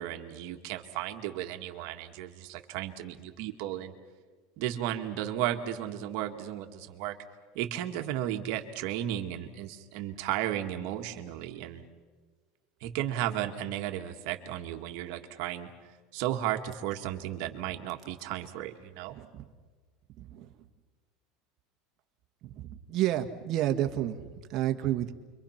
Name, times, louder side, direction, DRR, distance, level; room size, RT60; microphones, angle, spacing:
voice 1, 0.0-3.9 4.6-7.2 7.5-11.8 12.8-15.7 16.1-19.2, right 12 dB, 60° right, 5 dB, 1.9 m, -34 dB
voice 2, 19.1-19.5 20.2-20.5 22.4-25.1, right 13 dB, 40° right, 5 dB, 1.7 m, -31 dB
29.5 x 24.0 x 5.9 m, 1.4 s
supercardioid pair, 145°, 0 cm